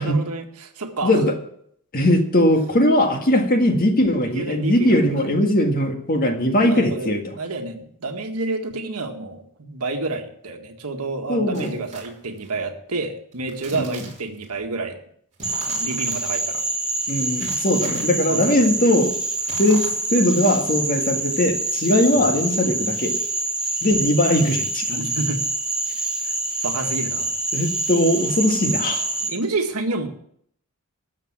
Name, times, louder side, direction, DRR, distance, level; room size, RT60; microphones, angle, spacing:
voice 1, 0.0-1.2 4.3-5.1 6.6-15.0 15.6-16.6 18.3-18.8 22.1-22.3 24.9-25.4 26.2-26.3 26.6-27.3 29.3-30.1, right 3 dB, 75° right, 4 dB, 1.7 m, -29 dB
voice 2, 1.0-1.3 1.9-7.2 11.3-11.7 17.1-19.1 19.6-23.1 23.8-24.9 27.5-29.0, left 1 dB, 40° left, 4 dB, 1.8 m, -19 dB
sound 1, 11.5-12.5 13.3-14.4 15.3-16.2 17.3-18.1 19.3-20.2, right 3 dB, 35° right, 3.4 m, -40 dB
Frog, 15.4-29.3, right 2 dB, 5° right, 1.8 m, -26 dB
13.0 x 7.2 x 7.5 m, 0.68 s
head